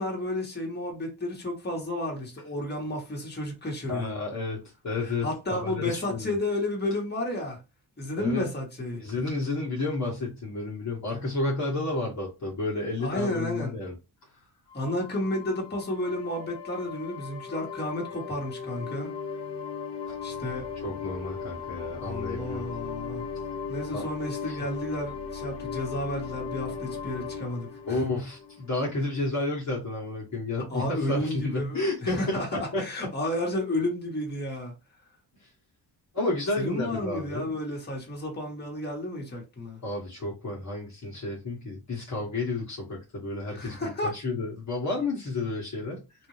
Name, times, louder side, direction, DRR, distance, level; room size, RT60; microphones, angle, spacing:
voice 1, 0.0-4.1 5.0-7.6 8.0-9.0 13.0-13.7 14.7-19.1 20.2-20.7 22.0-23.3 23.7-28.0 30.7-34.7 36.6-39.8 43.6-44.2, left 1 dB, 25° left, 1.7 m, -32 dB
voice 2, 3.9-4.6 4.8-6.3 8.1-8.4 8.9-13.9 20.8-22.6 23.9-24.0 24.4-24.6 27.8-33.1 35.4-35.5 36.1-37.5 39.8-46.0, left 2 dB, 45° left, 1.5 m, -31 dB
sound 1, 14.7-29.1, left 6 dB, 85° left, 0.8 m, -37 dB
3.8 x 2.7 x 3.2 m
cardioid pair, 90°, 40 cm